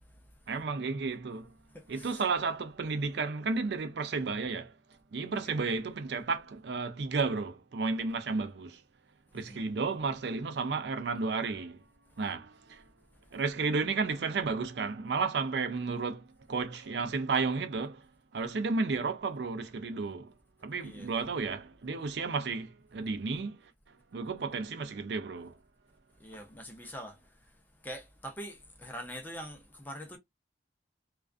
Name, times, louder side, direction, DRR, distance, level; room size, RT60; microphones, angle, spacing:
voice 1, 0.5-1.5 1.9-4.7 5.1-8.8 9.3-11.9 12.2-12.8 13.3-18.1 18.3-20.3 20.6-23.7 24.1-25.6, right 4 dB, 65° right, 0.5 m, -32 dB
voice 2, 1.7-2.2 5.3-5.6 9.3-9.6 20.8-21.1 26.2-27.5 27.8-30.2, equal, 10° left, 0.5 m, -44 dB
2.4 x 2.2 x 2.4 m
head